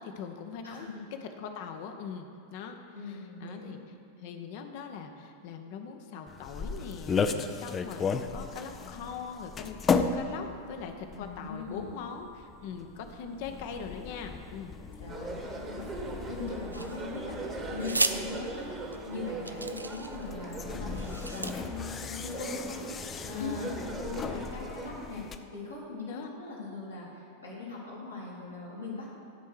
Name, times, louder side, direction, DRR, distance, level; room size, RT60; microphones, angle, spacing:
voice 1, 0.0-0.9 1.2-3.8 4.2-14.7 23.4-23.9 26.1-26.3, left 6 dB, 50° left, 5 dB, 0.8 m, -41 dB
voice 2, 0.6-1.0 2.9-3.8 11.1-12.0 15.0-18.8 19.1-22.8 23.2-25.3 25.5-29.1, left 3 dB, 80° left, -7 dB, 2.2 m, -40 dB
sound 1, 6.3-25.4, left 5 dB, 25° left, 0.4 m, -36 dB
sound 2, 15.1-24.9, right 2 dB, 20° right, 1.2 m, -40 dB
sound 3, 16.7-17.2 17.8-18.2 18.9-19.0 19.5-20.3 20.9-21.5, right 2 dB, 80° right, 0.4 m, -33 dB
11.0 x 4.6 x 6.4 m, 2.7 s
figure-of-eight pair, 90°, 0 cm